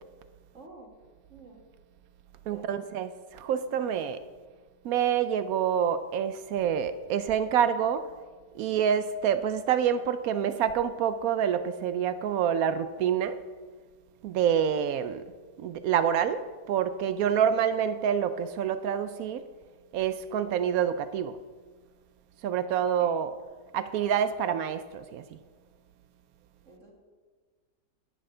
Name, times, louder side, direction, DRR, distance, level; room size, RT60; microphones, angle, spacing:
voice 1, 0.5-0.9 1.3-1.6 2.5-2.7 23.0-23.2 26.7-26.9, right 3 dB, 45° right, 2.0 m, -49 dB
voice 2, 2.5-4.2 4.8-8.1 8.5-13.4 14.2-15.2 15.6-19.4 19.9-21.4 22.4-23.3 23.7-25.2, right 8 dB, 70° right, 0.9 m, -27 dB
10.5 x 9.9 x 3.8 m
omnidirectional pair, 1.9 m